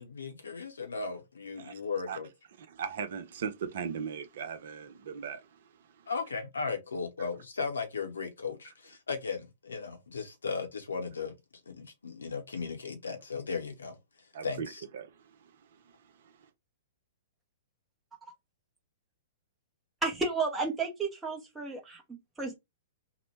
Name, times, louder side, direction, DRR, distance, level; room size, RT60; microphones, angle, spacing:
voice 1, 0.0-2.3 6.1-11.3 11.7-14.0 14.4-14.8, left 5 dB, 70° left, 0.7 m, -36 dB
voice 2, 2.6-6.1 14.3-16.5, right 7 dB, 55° right, 0.5 m, -40 dB
voice 3, 20.0-22.5, right 4 dB, 10° right, 0.7 m, -32 dB
2.9 x 2.1 x 3.1 m
figure-of-eight pair, 110°, 0 cm